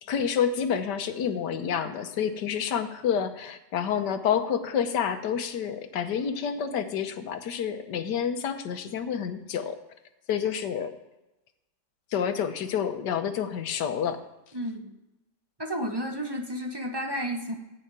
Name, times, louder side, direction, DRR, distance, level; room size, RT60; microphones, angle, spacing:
voice 1, 0.0-9.8 10.3-10.9 12.1-14.2, left 8 dB, 75° left, 8 dB, 1.5 m, -28 dB
voice 2, 14.5-14.9 15.6-17.5, equal, 20° right, 3 dB, 0.9 m, -32 dB
14.5 x 5.6 x 8.8 m, 0.98 s
omnidirectional pair, 1.8 m